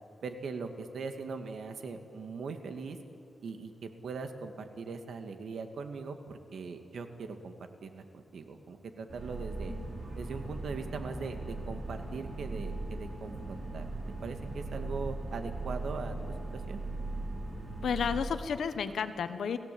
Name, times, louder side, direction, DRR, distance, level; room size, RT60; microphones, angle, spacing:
voice 1, 0.2-3.0 3.4-7.5 7.8-9.7 10.2-13.9 14.2-16.2 16.5-16.8, right 4 dB, 75° right, 6 dB, 2.2 m, -40 dB
sound 1, 9.1-18.2, right 2 dB, 40° right, 6.1 m, -39 dB
voice 2, 17.8-19.6, left 7 dB, 85° left, 10 dB, 1.4 m, -32 dB
30.0 x 16.5 x 8.6 m, 2.5 s
wide cardioid pair, 140°, 0 cm